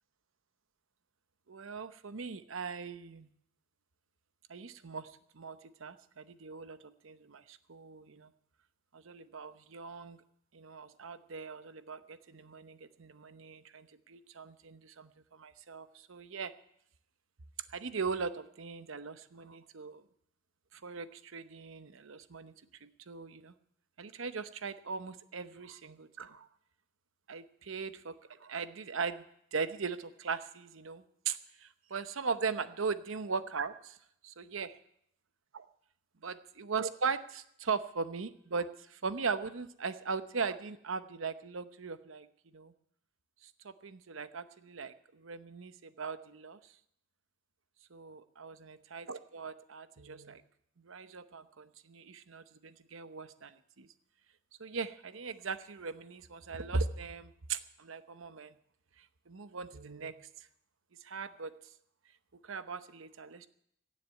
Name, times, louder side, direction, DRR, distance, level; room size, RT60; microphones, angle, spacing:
voice 1, 1.5-3.3 4.5-8.3 8.9-10.2 10.5-16.5 17.7-20.0 20.7-22.5 22.8-23.5 24.0-26.5 27.3-29.2 29.5-34.0 34.2-34.8 35.5-35.7 36.2-42.7 43.4-46.7 47.9-50.4 50.8-53.9 54.6-58.5 59.0-60.5 61.0-61.5 62.4-63.5, right 5 dB, 80° right, 13 dB, 0.8 m, -39 dB
16.5 x 7.6 x 9.7 m, 0.73 s
head